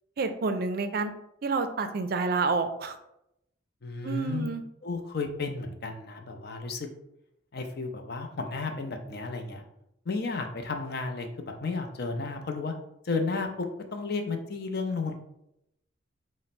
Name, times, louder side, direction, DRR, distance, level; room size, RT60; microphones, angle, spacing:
voice 1, 0.2-1.1 1.4-3.0 4.0-4.6, right 4 dB, 50° right, 8 dB, 0.4 m, -28 dB
voice 2, 3.8-4.5 4.8-6.9 7.5-9.6 10.1-12.7 13.0-13.7 13.9-15.1, left 3 dB, 55° left, 4 dB, 0.5 m, -33 dB
4.3 x 2.1 x 4.1 m, 0.80 s
head